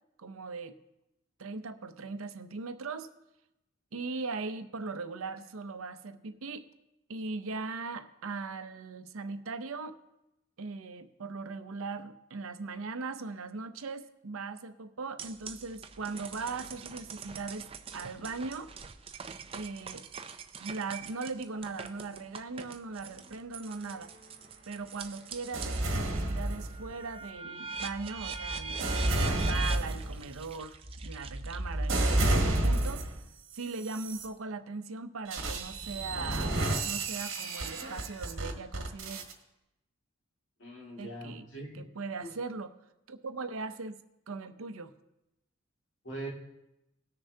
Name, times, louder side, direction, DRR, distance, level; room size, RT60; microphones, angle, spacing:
voice 1, 0.2-0.8 1.4-3.1 3.9-6.7 7.1-10.0 10.6-18.7 19.5-20.0 20.6-24.1 24.7-33.1 33.5-36.6 36.9-39.2 41.0-41.5 41.7-42.7 43.1-44.0 44.3-44.9, right 4 dB, 85° right, 9 dB, 0.7 m, -39 dB
sound 1, 15.2-25.9 26.3-32.0, right 5 dB, 25° right, 0.4 m, -43 dB
sound 2, 25.5-27.1 27.8-33.3 33.9-34.3 35.3-39.3, right 1 dB, 70° right, 1.5 m, -31 dB
voice 2, 40.6-41.9 42.2-42.4 46.0-46.3, right 1 dB, 60° left, -3 dB, 2.2 m, -41 dB
19.5 x 6.7 x 2.8 m, 0.91 s
head